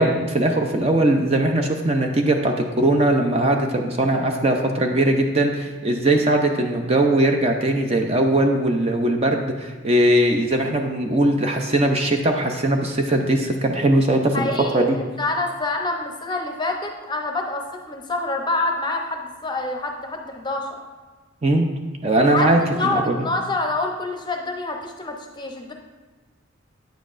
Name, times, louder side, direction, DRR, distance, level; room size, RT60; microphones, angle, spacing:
voice 1, 0.0-14.5 14.7-15.0 21.4-21.7 22.0-23.2, right 1 dB, 30° right, 3 dB, 0.5 m, -20 dB
voice 2, 14.3-20.7 22.2-22.5 22.8-25.7, left 2 dB, 20° left, 3 dB, 0.7 m, -26 dB
9.0 x 7.4 x 2.5 m, 1.4 s
head